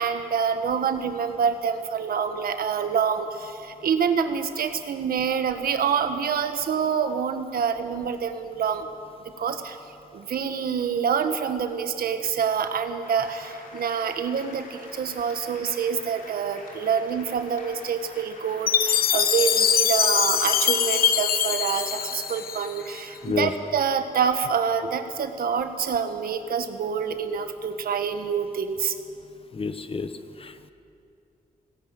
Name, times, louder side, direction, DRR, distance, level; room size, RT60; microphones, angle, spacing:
voice 1, 0.0-8.9 9.4-9.8 10.1-28.9, right 7 dB, 80° right, 8 dB, 1.5 m, -26 dB
Applause enthusiastic some cheering, 13.0-27.5, left 2 dB, 65° left, 4.3 m, -47 dB
Chime, 18.7-22.9, left 8 dB, 85° left, 0.9 m, -23 dB
voice 2, 29.5-30.1 30.4-30.7, left 4 dB, 40° left, 10 dB, 1.2 m, -29 dB
18.5 x 17.0 x 9.3 m, 2.7 s
cardioid pair, 90°, 15 cm